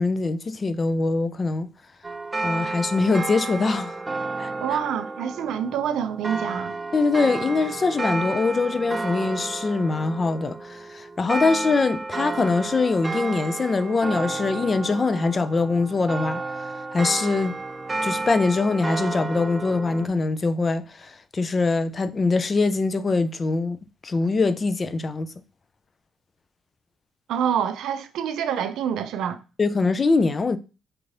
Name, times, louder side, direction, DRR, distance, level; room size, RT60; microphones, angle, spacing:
voice 1, 0.0-1.7 2.4-4.0 4.4-4.5 6.9-16.4 16.9-17.6 18.0-25.3 29.6-30.6, left 3 dB, 35° left, 0.4 m, -23 dB
sound 1, 2.0-20.1, right 3 dB, 20° right, 0.4 m, -31 dB
voice 2, 4.6-6.8 27.3-29.4, right 8 dB, 80° right, 0.4 m, -27 dB
4.5 x 2.6 x 3.2 m
cardioid pair, 90°, 0 cm